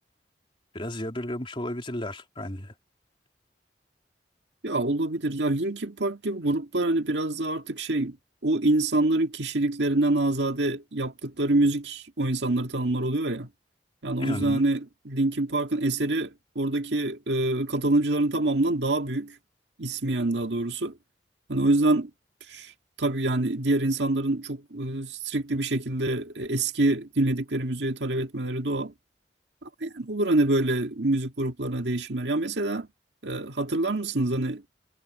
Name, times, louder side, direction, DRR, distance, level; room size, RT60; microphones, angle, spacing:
voice 1, 0.7-2.7 14.2-14.6, left 1 dB, 30° left, 3.3 m, -33 dB
voice 2, 4.6-8.2 8.4-13.5 14.0-19.4 19.8-21.0 21.5-22.1 22.5-22.7 23.0-28.9 29.6-32.9 33.2-34.6, right 2 dB, 80° right, 1.9 m, -26 dB
head